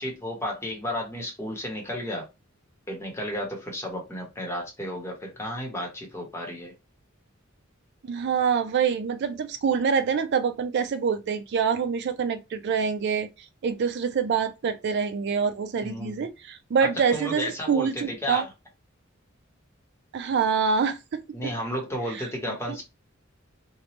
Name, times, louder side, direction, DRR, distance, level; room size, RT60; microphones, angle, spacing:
voice 1, 0.0-2.2 2.9-6.7 15.8-16.2 16.8-18.5 21.3-22.8, equal, 15° left, 0.9 m, -33 dB
voice 2, 8.1-13.3 13.6-18.4 20.1-21.5 22.1-22.3, right 6 dB, 55° right, 0.4 m, -26 dB
3.0 x 2.1 x 2.9 m
head